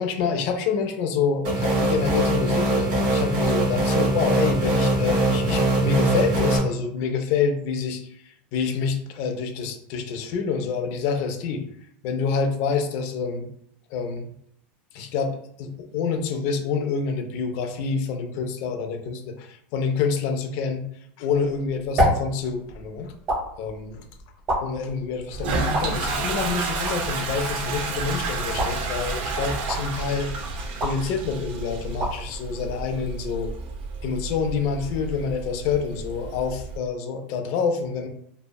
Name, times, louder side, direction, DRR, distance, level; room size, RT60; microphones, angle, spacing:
voice 1, 0.0-8.0 8.5-11.6 12.0-13.5 13.9-14.3 14.9-20.9 21.2-23.1 23.6-24.1 24.6-30.3 30.8-33.5 34.0-38.1, left 5 dB, 45° left, 5 dB, 0.4 m, -27 dB
sound 1, 1.4-6.6, right 2 dB, 70° right, 0.9 m, -22 dB
sound 2, 21.3-33.5, equal, 30° right, 1.0 m, -31 dB
Toilet flush, 25.3-36.8, right 3 dB, 55° right, 0.4 m, -30 dB
2.6 x 2.0 x 2.2 m, 0.71 s
supercardioid pair, 165°, 6 cm